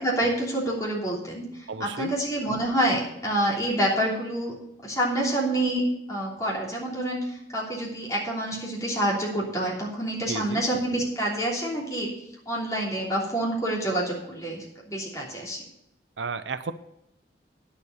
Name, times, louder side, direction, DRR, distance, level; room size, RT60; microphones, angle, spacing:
voice 1, 0.0-4.5 4.8-5.8 6.1-12.1 12.5-15.6, right 1 dB, 20° left, -4 dB, 3.1 m, -27 dB
voice 2, 1.7-2.1 10.3-10.6 16.2-16.7, right 4 dB, 85° right, 12 dB, 0.6 m, -33 dB
9.8 x 7.3 x 6.6 m, 0.78 s
head